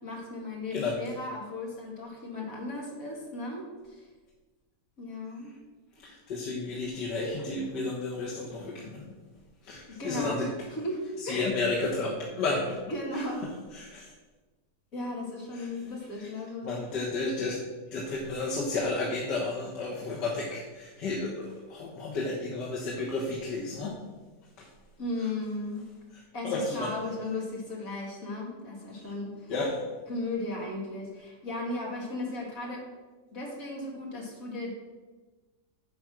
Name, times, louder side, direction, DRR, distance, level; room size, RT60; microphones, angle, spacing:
voice 1, 0.0-4.1 5.0-5.5 9.9-11.5 12.9-13.6 14.9-16.7 25.0-25.8 26.3-29.5 30.1-32.9 33.3-34.7, left 2 dB, 50° left, -2 dB, 2.6 m, -36 dB
voice 2, 6.0-9.1 9.6-10.5 11.2-12.8 13.1-13.2 13.7-14.1 15.5-15.7 16.2-16.3 16.6-17.6 17.9-24.0 24.6-24.7 26.4-26.9 29.5-29.8, left 3 dB, 80° left, -5 dB, 2.0 m, -32 dB
10.0 x 5.2 x 6.1 m, 1.3 s
omnidirectional pair, 1.9 m